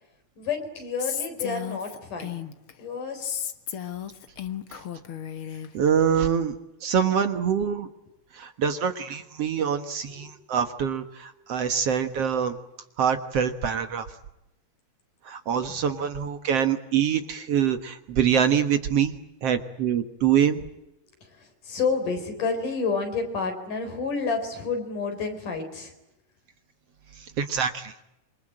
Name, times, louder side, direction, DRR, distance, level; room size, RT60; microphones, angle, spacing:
voice 1, 0.4-2.4 2.8-3.5 10.1-10.3 15.7-15.9 21.2-25.9, left 4 dB, 75° left, 6 dB, 5.7 m, -30 dB
Female speech woman speaking, 1.0-2.7 3.2-5.7, left 9 dB, 50° left, 1.8 m, -34 dB
voice 2, 5.7-6.6 6.8-7.9 8.3-12.6 13.0-14.1 15.3-19.1 19.4-20.6 27.2-27.9, right 8 dB, 60° right, 9 dB, 2.0 m, -25 dB
27.5 x 24.5 x 8.9 m, 0.89 s
omnidirectional pair, 3.7 m